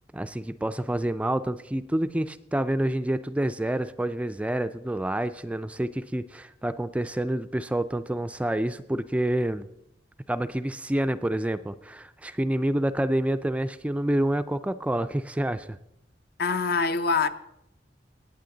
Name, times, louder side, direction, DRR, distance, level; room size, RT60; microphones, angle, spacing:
voice 1, 0.1-9.7 10.3-15.8, right 1 dB, 5° right, 0.3 m, -28 dB
voice 2, 16.4-17.3, left 4 dB, 60° left, 0.7 m, -24 dB
19.0 x 8.6 x 3.9 m
head